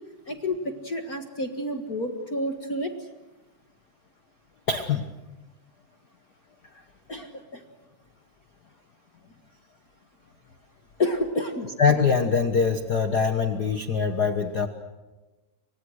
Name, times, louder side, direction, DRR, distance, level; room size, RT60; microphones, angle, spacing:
voice 1, 0.3-2.9 7.1-7.6 11.0-11.7, left 1 dB, 40° left, 5 dB, 1.5 m, -29 dB
voice 2, 4.7-5.1 11.8-14.7, left 5 dB, 60° left, 7 dB, 1.0 m, -23 dB
30.0 x 25.5 x 6.4 m, 1.1 s
omnidirectional pair, 3.8 m